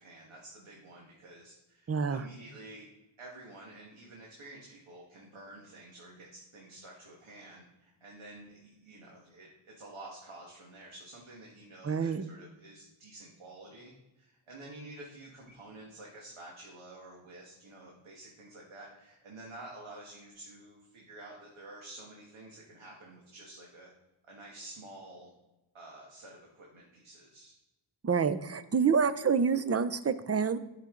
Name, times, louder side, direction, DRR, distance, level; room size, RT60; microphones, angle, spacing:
voice 1, 0.0-2.9 3.2-23.9 24.2-25.3 25.7-27.5, right 2 dB, 80° right, -2 dB, 1.7 m, -50 dB
voice 2, 1.9-2.2 11.8-12.2 28.0-30.6, right 6 dB, 30° right, 13 dB, 0.5 m, -27 dB
10.5 x 5.9 x 3.8 m, 1.0 s
wide cardioid pair, 75°, 48 cm